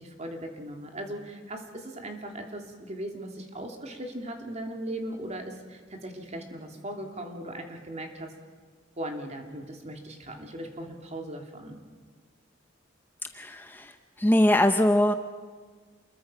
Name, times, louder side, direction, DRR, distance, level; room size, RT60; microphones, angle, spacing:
voice 1, 0.0-8.3 9.0-11.8, right 1 dB, 35° right, 3 dB, 3.0 m, -38 dB
voice 2, 13.3-15.1, left 1 dB, 10° left, 7 dB, 0.8 m, -22 dB
28.5 x 22.0 x 5.7 m, 1.6 s
head